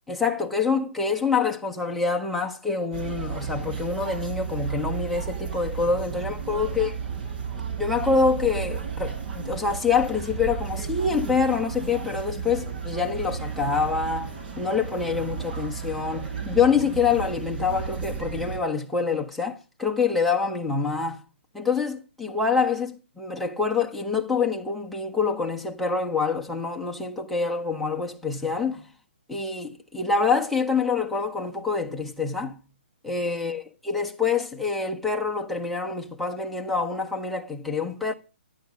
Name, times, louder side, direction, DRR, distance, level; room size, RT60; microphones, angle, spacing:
voice 1, 0.1-6.9 7.8-21.2 21.5-28.9 29.3-32.6 33.0-38.1, left 5 dB, ahead, 1.5 m, -26 dB
sound 1, 2.9-18.6, right 6 dB, 40° right, 5.3 m, -33 dB
13.0 x 11.0 x 6.3 m
hypercardioid pair, 145°, 6 cm